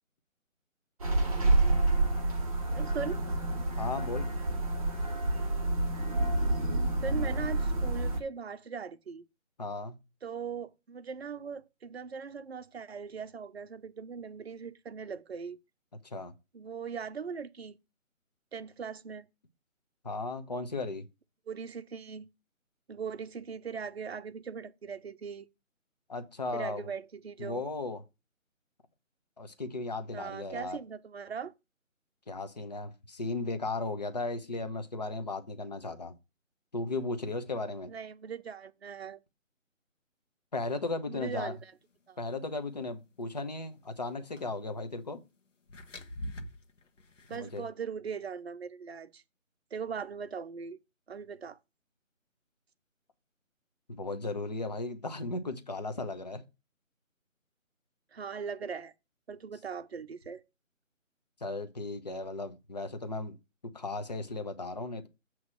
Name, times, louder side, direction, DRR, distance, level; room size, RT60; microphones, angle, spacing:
sound 1, 1.0-8.2, right 2 dB, 25° right, 1.3 m, -28 dB
voice 1, 2.7-3.2 7.0-9.3 10.2-15.6 16.5-17.8 18.5-19.3 21.5-22.3 22.9-25.5 26.5-27.6 30.1-31.5 37.9-39.2 41.1-41.7 42.1-42.2 47.3-49.2 49.7-50.8 51.1-51.6 58.1-58.9 59.3-60.4, right 6 dB, 50° right, 0.6 m, -40 dB
voice 2, 3.8-4.3 9.6-10.0 16.0-16.3 20.0-21.0 26.1-26.9 27.4-28.0 29.4-30.8 32.3-36.1 36.7-37.9 40.5-41.5 42.2-45.2 47.3-47.6 53.9-56.5 61.4-63.4 63.7-65.1, left 3 dB, 30° left, 0.8 m, -36 dB
sound 2, 44.3-44.5 45.7-47.7, left 1 dB, 60° left, 1.3 m, -43 dB
7.9 x 3.1 x 6.2 m
figure-of-eight pair, 165°, 41 cm